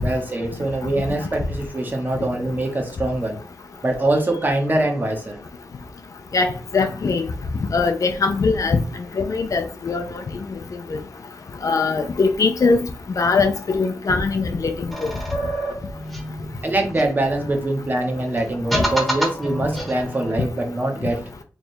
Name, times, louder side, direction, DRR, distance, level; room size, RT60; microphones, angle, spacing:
voice 1, 0.0-3.4 3.8-5.4 16.6-21.3, right 2 dB, 30° right, 1.0 m, -23 dB
voice 2, 6.3-7.2 7.7-8.8 9.2-10.0 10.9-11.0 11.6-12.9 13.2-14.9, left 4 dB, 60° left, 0.5 m, -21 dB
sound 1, 14.9-17.6 18.4-20.3, equal, ahead, 1.1 m, -28 dB
3.3 x 2.4 x 4.3 m
wide cardioid pair, 105°, 6 cm